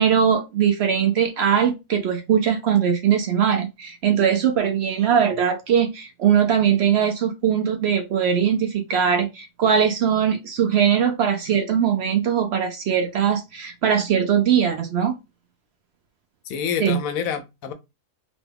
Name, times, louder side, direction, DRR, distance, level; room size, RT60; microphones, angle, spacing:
voice 1, 0.0-15.2 16.8-17.0, right 8 dB, 65° right, 0.7 m, -20 dB
voice 2, 16.5-17.7, left 7 dB, 85° left, 1.0 m, -27 dB
2.9 x 2.2 x 3.3 m
omnidirectional pair, 1.4 m